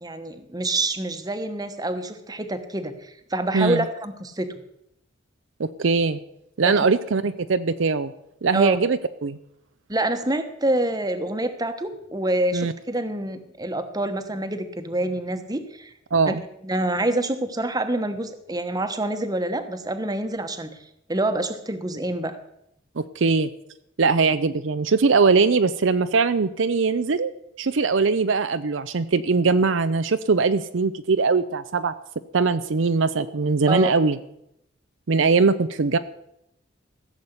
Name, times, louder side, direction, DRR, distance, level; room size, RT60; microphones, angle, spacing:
voice 1, 0.0-4.5 6.6-6.8 8.5-8.8 9.9-15.9 16.3-16.4 16.6-20.7 21.1-22.4 33.2-33.3 33.7-33.9, right 1 dB, 20° right, 8 dB, 1.2 m, -27 dB
voice 2, 3.5-3.8 5.6-6.2 6.6-8.1 8.4-9.4 12.5-12.7 16.1-16.4 23.0-23.5 24.0-27.3 27.6-31.9 32.3-34.2 35.1-36.0, right 4 dB, 65° right, 11 dB, 0.6 m, -21 dB
16.0 x 7.3 x 8.1 m, 0.79 s
head